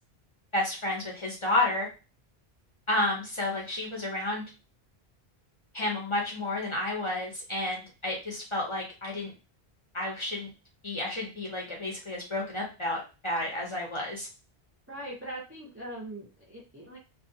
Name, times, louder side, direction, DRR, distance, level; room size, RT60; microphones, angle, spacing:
voice 1, 0.5-1.9 2.9-4.5 5.7-9.3 9.9-10.5 10.8-14.3, left 2 dB, 35° left, -3 dB, 0.6 m, -31 dB
voice 2, 14.9-17.0, right 1 dB, 20° right, -4 dB, 0.4 m, -41 dB
2.5 x 2.1 x 2.6 m, 0.31 s
omnidirectional pair, 1.1 m